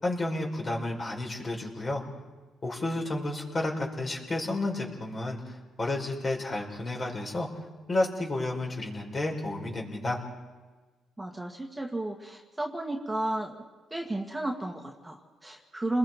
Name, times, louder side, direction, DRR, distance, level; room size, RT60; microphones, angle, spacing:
voice 1, 0.0-2.0 2.6-7.5 7.9-10.2, left 2 dB, 35° left, 0 dB, 4.7 m, -31 dB
voice 2, 11.2-13.5 13.9-16.0, right 1 dB, 10° right, 0 dB, 2.1 m, -33 dB
30.0 x 21.0 x 4.5 m, 1.3 s
cardioid pair, 90°, 0 cm